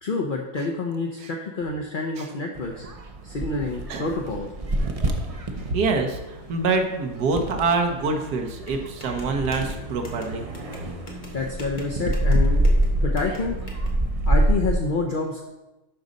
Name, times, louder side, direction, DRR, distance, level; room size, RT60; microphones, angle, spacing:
voice 1, 0.0-2.9 3.2-4.5 5.6-5.7 11.3-12.6 12.9-13.6 14.3-15.4, left 3 dB, 50° left, 1 dB, 0.6 m, -28 dB
sound 1, 2.5-14.8, right 1 dB, 45° right, 0.4 m, -26 dB
voice 2, 5.7-10.4, right 3 dB, 80° right, 3 dB, 1.6 m, -25 dB
sound 2, 8.6-13.9, left 1 dB, 30° left, 1.6 m, -44 dB
11.5 x 4.0 x 5.2 m, 1.1 s
omnidirectional pair, 1.7 m